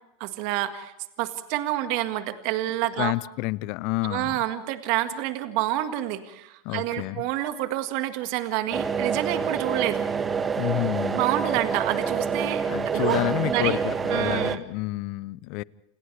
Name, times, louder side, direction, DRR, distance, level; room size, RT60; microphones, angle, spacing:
voice 1, 0.2-0.9 1.2-3.1 4.0-10.1 11.1-13.8 14.1-14.6, right 14 dB, 60° right, 8 dB, 1.8 m, -28 dB
voice 2, 3.0-4.4 6.6-7.2 10.6-11.2 12.7-15.6, left 22 dB, 55° left, 21 dB, 0.7 m, -29 dB
saw the bones, 8.7-14.6, right 5 dB, 25° right, 1.5 m, -27 dB
29.0 x 28.5 x 3.4 m, 0.89 s
hypercardioid pair, 90°, 0 cm